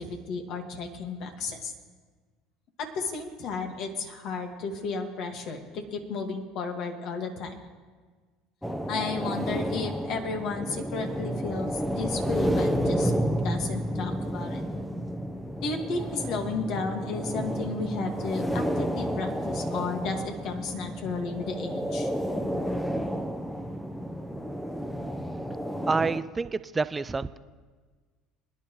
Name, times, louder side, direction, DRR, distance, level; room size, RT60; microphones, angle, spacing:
voice 1, 0.0-1.7 2.8-7.6 8.9-13.1 13.4-14.6 15.6-22.1, left 4 dB, 60° left, 4 dB, 1.8 m, -33 dB
sound 1, 8.6-26.2, equal, 5° left, 0.9 m, -31 dB
voice 2, 25.9-27.4, right 4 dB, 20° right, 15 dB, 0.5 m, -28 dB
23.0 x 10.0 x 3.1 m, 1.4 s
hypercardioid pair, 75°, 0 cm